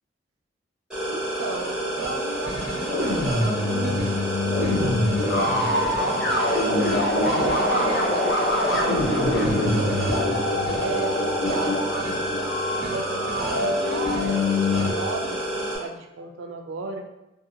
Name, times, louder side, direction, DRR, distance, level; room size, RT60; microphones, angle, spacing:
sound 1, 0.9-15.8, right 1 dB, 5° right, 0.8 m, -29 dB
voice 1, 1.0-5.0 5.5-10.0 10.8-11.9 12.8-17.1, right 3 dB, 85° right, 4 dB, 0.3 m, -34 dB
sound 2, 2.9-14.9, left 2 dB, 55° left, 0.5 m, -24 dB
2.7 x 2.3 x 2.6 m, 0.95 s
head